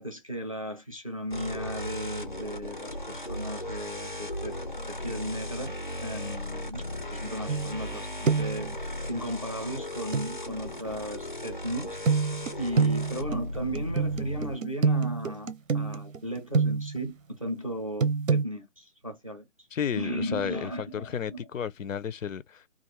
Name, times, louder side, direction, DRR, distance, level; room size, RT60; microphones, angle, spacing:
voice 1, 0.0-4.6 4.9-5.7 6.0-12.0 12.3-19.4 20.0-21.5, equal, 30° right, 0.5 m, -36 dB
sound 1, 1.3-14.5, left 1 dB, 40° left, 0.4 m, -36 dB
sound 2, 7.5-8.0 8.3-8.7 10.1-10.3 12.1-17.1 18.0-18.4, right 5 dB, 90° right, 0.7 m, -26 dB
voice 2, 19.7-22.6, left 8 dB, 90° left, 0.6 m, -33 dB
2.6 x 2.3 x 2.9 m
hypercardioid pair, 175°, 38 cm